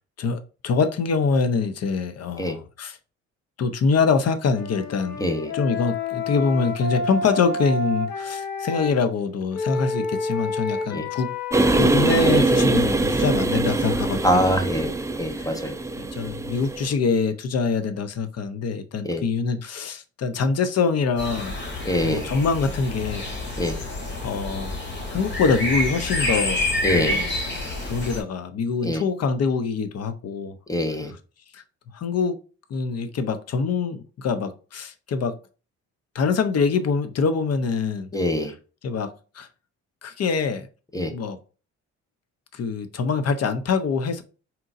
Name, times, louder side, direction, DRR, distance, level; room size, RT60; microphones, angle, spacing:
voice 1, 0.2-2.9 3.6-5.2 5.5-11.4 11.8-14.4 15.4-15.5 16.0-21.6 22.0-23.3 24.2-24.8 25.1-26.7 26.9-27.3 27.9-30.6 31.5-31.6 31.9-32.4 32.7-35.4 36.1-38.1 38.8-39.5 40.0-40.7 41.1-41.4 42.5-44.2, left 5 dB, 55° left, 0.8 m, -24 dB
Wind instrument woodwind instrument, 4.5-8.9 9.5-11.8, left 3 dB, 90° left, 1.4 m, -29 dB
voice 2, 5.2-5.5 10.9-11.1 14.2-14.9 15.2-15.7 19.0-19.2 21.8-22.3 23.6-23.8 26.8-27.3 28.8-29.0 30.7-31.1 38.1-38.5 40.9-41.1, left 1 dB, 10° left, 0.8 m, -24 dB
sound 1, 11.5-16.9, right 2 dB, 10° right, 0.5 m, -23 dB
sound 2, 21.2-28.2, left 1 dB, 35° left, 2.4 m, -28 dB
4.4 x 3.8 x 2.5 m
cardioid pair, 90°, 30 cm